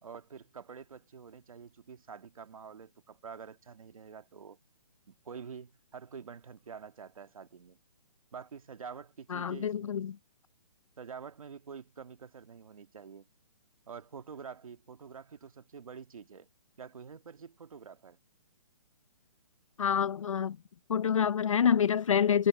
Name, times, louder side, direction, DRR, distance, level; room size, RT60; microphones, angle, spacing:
voice 1, 0.0-4.6 5.1-7.8 8.3-10.0 11.0-13.3 13.9-16.5 16.8-18.2, right 6 dB, 75° right, 1.8 m, -47 dB
voice 2, 9.3-10.1 19.8-20.6 20.9-22.5, left 8 dB, 65° left, 0.6 m, -27 dB
hypercardioid pair, 180°, 18 cm